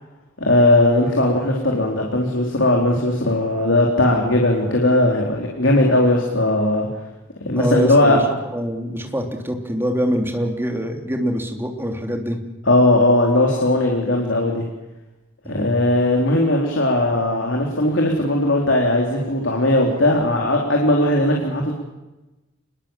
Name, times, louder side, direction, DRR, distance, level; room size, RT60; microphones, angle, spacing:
voice 1, 0.4-6.9 7.4-8.2 12.7-14.6 15.5-21.7, left 1 dB, 75° left, 0 dB, 4.0 m, -18 dB
voice 2, 7.5-8.2 8.5-12.4 15.4-15.8, equal, 10° right, 3 dB, 3.1 m, -24 dB
26.5 x 21.5 x 7.4 m, 1.0 s
head